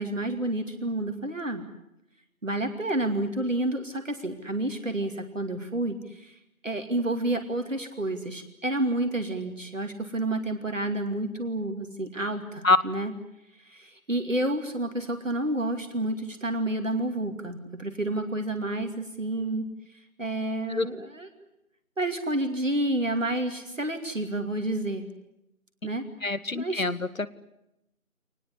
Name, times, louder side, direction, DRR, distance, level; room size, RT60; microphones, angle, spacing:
voice 1, 0.0-1.6 2.4-6.3 6.6-13.1 13.6-19.6 20.2-21.3 22.0-25.1 25.8-26.1 26.5-26.8, right 1 dB, 60° right, 6 dB, 2.6 m, -29 dB
voice 2, 26.2-27.3, left 2 dB, 65° left, 16 dB, 1.3 m, -24 dB
25.0 x 19.5 x 9.6 m, 0.85 s
figure-of-eight pair, 165°, 43 cm